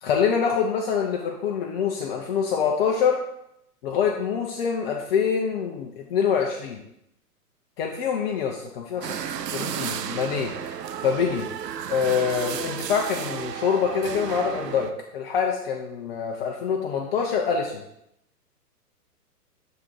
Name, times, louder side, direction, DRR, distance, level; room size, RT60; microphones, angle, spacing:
voice 1, 0.0-3.2 3.8-6.8 7.8-9.1 9.5-10.5 11.0-11.5 11.9-17.8, left 6 dB, 40° left, 0 dB, 0.7 m, -25 dB
sound 1, 9.0-14.9, right 8 dB, 90° right, 0.6 m, -33 dB
6.8 x 3.7 x 4.5 m, 0.79 s
hypercardioid pair, 125°, 47 cm